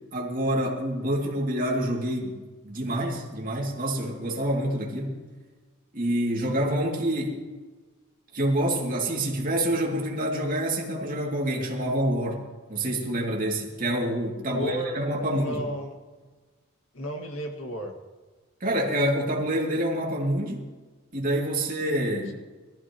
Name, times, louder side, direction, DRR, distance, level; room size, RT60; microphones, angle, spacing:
voice 1, 0.1-2.4 2.6-5.2 5.9-7.4 8.3-12.4 12.7-15.6 18.6-20.6 21.1-22.3, right 1 dB, 40° right, -2 dB, 2.7 m, -27 dB
voice 2, 14.5-16.0 16.9-17.9, right 1 dB, 75° left, 2 dB, 2.1 m, -33 dB
22.5 x 14.5 x 3.1 m, 1.3 s
head